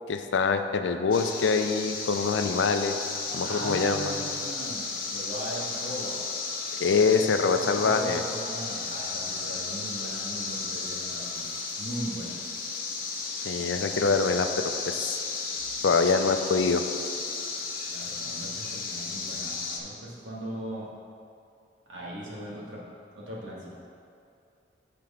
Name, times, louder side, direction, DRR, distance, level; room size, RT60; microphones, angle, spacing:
voice 1, 0.1-3.0 3.3-4.1 6.8-8.2 13.4-15.2 15.8-16.8, left 4 dB, 90° left, 8 dB, 0.5 m, -25 dB
sound 1, 1.1-19.8, left 4 dB, 50° left, 0.8 m, -34 dB
voice 2, 3.4-6.2 7.0-7.2 7.5-11.5 11.8-12.4 15.8-16.3 17.9-20.9 21.8-22.8 23.1-23.7, right 1 dB, 85° right, -5 dB, 1.7 m, -39 dB
7.7 x 4.6 x 5.0 m, 2.5 s
head